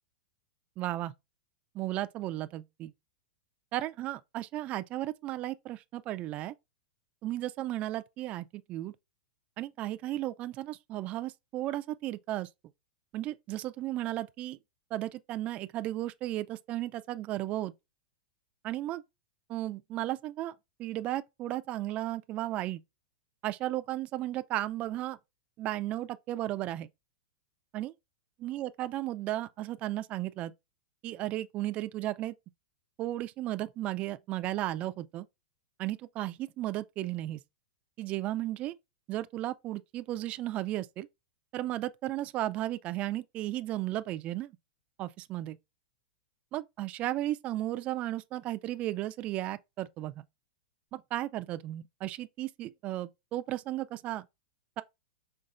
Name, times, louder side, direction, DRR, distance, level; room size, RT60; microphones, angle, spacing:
voice 1, 0.8-1.1 1.7-2.9 3.7-6.5 7.2-8.9 9.6-12.5 13.1-14.6 14.9-17.7 18.6-19.0 19.5-20.5 20.8-22.8 23.4-25.2 25.6-26.9 27.7-27.9 28.4-30.5 31.0-32.4 33.0-35.3 35.8-37.4 38.0-38.7 39.1-41.1 41.5-44.5 45.0-45.6 46.5-50.2 50.9-54.3, right 15 dB, 25° right, 0.3 m, -34 dB
5.4 x 3.8 x 2.5 m
supercardioid pair, 150°, 5 cm